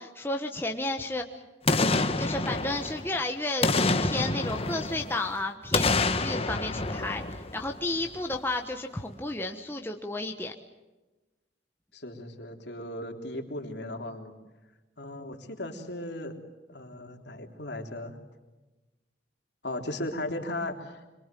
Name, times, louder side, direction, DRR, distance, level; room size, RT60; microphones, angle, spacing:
voice 1, 0.0-1.4 2.2-10.5, left 2 dB, 10° left, 3 dB, 1.2 m, -32 dB
Boom, 1.7-3.2 3.6-5.3 5.7-8.0 8.3-8.4, left 3 dB, 30° left, 1.3 m, -27 dB
voice 2, 11.9-14.3 15.0-16.3 16.7-18.2 19.6-21.0, left 1 dB, 65° left, 3 dB, 3.5 m, -36 dB
26.0 x 23.5 x 7.7 m, 1.1 s
head